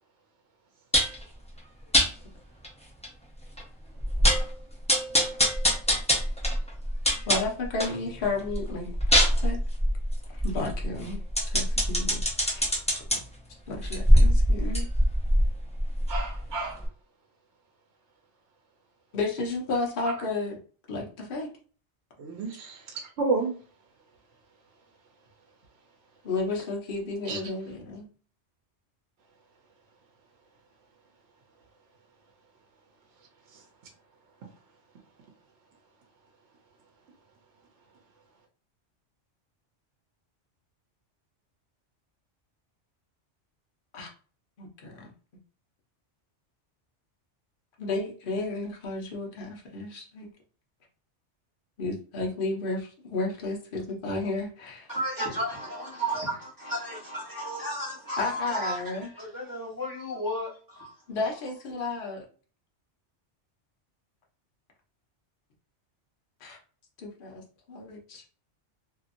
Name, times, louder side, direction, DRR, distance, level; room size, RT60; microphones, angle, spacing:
sound 1, 0.9-1.2 1.9-2.1 2.6-2.7 3.0-3.1 3.6-3.7 4.0-4.5 4.9-8.0 8.4-13.2 13.8-16.5 16.8-16.9, equal, 10° left, 0.5 m, -23 dB
voice 1, 7.3-9.0 9.4-9.6 10.3-13.0 13.7-14.9 19.1-20.6 20.9-21.5 26.2-28.1 43.9-44.1 44.6-45.1 47.8-50.3 51.8-54.9 58.2-59.1 61.1-62.2 66.4-66.6 67.0-68.3, left 3 dB, 50° left, 0.9 m, -32 dB
voice 2, 16.1-16.9 22.2-23.5 27.3-27.4 33.5-33.6, right 3 dB, 70° right, 0.9 m, -31 dB
voice 3, 54.9-61.0, right 1 dB, 20° right, 1.2 m, -33 dB
2.8 x 2.7 x 2.5 m
omnidirectional pair, 1.2 m